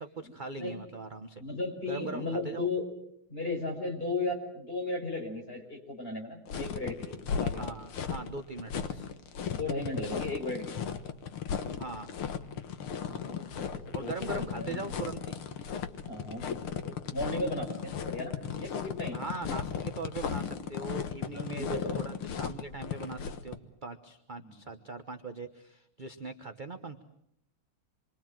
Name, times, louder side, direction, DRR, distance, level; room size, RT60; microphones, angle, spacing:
voice 1, 0.0-1.4 1.9-2.7 7.5-9.1 11.8-12.2 13.9-15.3 19.1-27.0, right 3 dB, 30° right, 7 dB, 1.0 m, -40 dB
voice 2, 1.4-2.9 3.3-7.6 8.9-9.0 9.5-10.9 13.1-14.8 16.1-19.2 21.3-22.0 24.4-24.6, left 2 dB, 25° left, 2 dB, 5.7 m, -36 dB
sound 1, 6.5-23.6, left 7 dB, 85° left, 2.2 m, -36 dB
27.5 x 23.5 x 7.6 m, 0.74 s
omnidirectional pair, 2.3 m